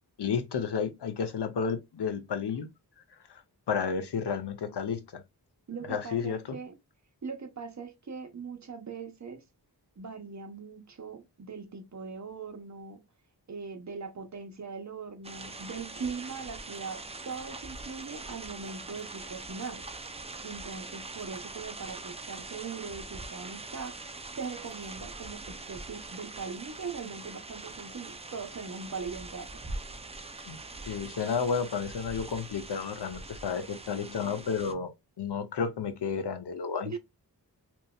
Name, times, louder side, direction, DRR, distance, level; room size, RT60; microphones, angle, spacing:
voice 1, 0.2-2.7 3.3-3.4 3.7-5.2 5.9-6.4 30.5-30.6 30.9-34.9 35.2-37.0, left 6 dB, 80° left, 0.6 m, -31 dB
voice 2, 5.7-6.8 7.2-9.4 10.0-13.0 13.5-19.8 20.4-29.5 36.8-37.0, right 5 dB, 45° right, 0.8 m, -40 dB
sound 1, 15.2-34.7, right 3 dB, 15° right, 0.3 m, -43 dB
2.9 x 2.6 x 2.2 m
wide cardioid pair, 70°, 40 cm